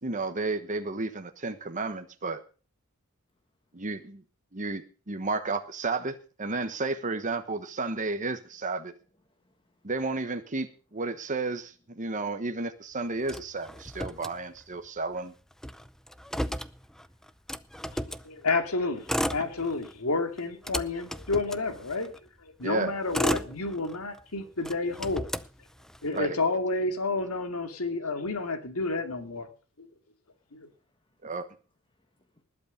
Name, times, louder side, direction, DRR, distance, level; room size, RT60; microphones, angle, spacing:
voice 1, 0.0-2.4 3.7-4.2 4.5-8.9 9.8-15.3 22.6-23.0 26.1-26.4 31.2-31.5, right 3 dB, 35° right, 1.3 m, -32 dB
voice 2, 9.3-9.9 16.6-17.2 30.7-31.3 31.9-32.4, left 1 dB, 25° left, 1.5 m, -68 dB
Motor vehicle (road), 13.2-14.9 15.2-15.3 15.5-18.3 18.9-20.0 20.4-22.2 22.8-24.2 24.6-26.2, equal, ahead, 0.6 m, -34 dB
voice 3, 17.9-22.1 22.6-25.3 26.0-29.5 29.8-29.9 30.5-30.7, left 3 dB, 80° left, 2.4 m, -30 dB
20.0 x 8.5 x 5.2 m
head